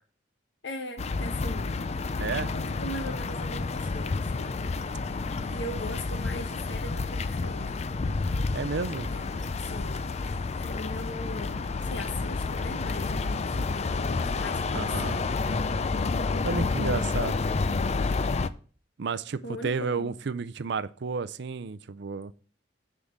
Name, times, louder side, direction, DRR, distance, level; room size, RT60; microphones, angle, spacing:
voice 1, 0.6-1.7 2.5-7.8 9.1-15.3 19.4-20.2, left 1 dB, 75° left, 1.6 m, -40 dB
sound 1, 1.0-18.5, left 3 dB, 35° left, 0.4 m, -30 dB
voice 2, 2.2-2.5 5.3-5.6 8.5-9.1 14.7-15.1 16.4-17.4 19.0-22.3, right 4 dB, 65° right, 0.5 m, -32 dB
10.0 x 3.7 x 7.2 m
head